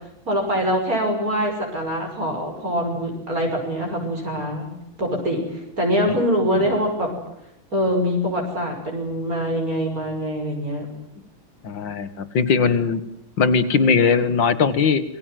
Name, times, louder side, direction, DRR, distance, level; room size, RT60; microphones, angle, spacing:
voice 1, 0.3-4.7 5.0-7.1 7.7-10.9, equal, 40° right, 1 dB, 6.5 m, -24 dB
voice 2, 11.6-13.0 13.4-15.0, left 5 dB, 65° left, 12 dB, 2.4 m, -19 dB
27.5 x 22.5 x 7.6 m, 0.78 s
omnidirectional pair, 2.2 m